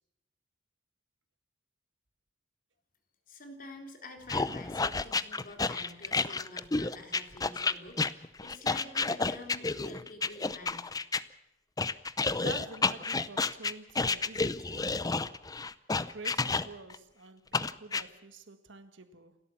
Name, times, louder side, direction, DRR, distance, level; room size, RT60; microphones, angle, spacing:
voice 1, 3.3-10.9, left 2 dB, 50° left, 4.0 m, -48 dB
sound 1, 4.3-11.2 11.8-17.0 17.5-18.0, left 4 dB, 20° left, 0.6 m, -30 dB
voice 2, 12.4-15.0 16.1-19.4, right 3 dB, 70° right, 1.8 m, -47 dB
28.5 x 13.0 x 7.3 m
head